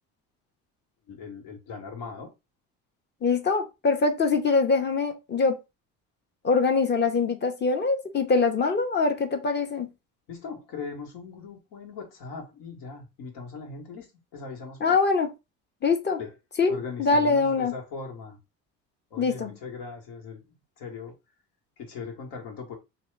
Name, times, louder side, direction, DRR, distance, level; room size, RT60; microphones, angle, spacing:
voice 1, 1.1-2.3 10.3-14.1 14.3-15.0 16.2-16.3 16.7-18.4 19.1-21.1 21.8-22.8, left 4 dB, 80° left, 1.1 m, -39 dB
voice 2, 3.2-5.6 6.4-9.9 14.8-15.3 15.8-16.2 16.6-17.7 19.2-19.5, left 4 dB, 30° left, 0.7 m, -23 dB
2.8 x 2.0 x 3.1 m
supercardioid pair, 80°, 34 cm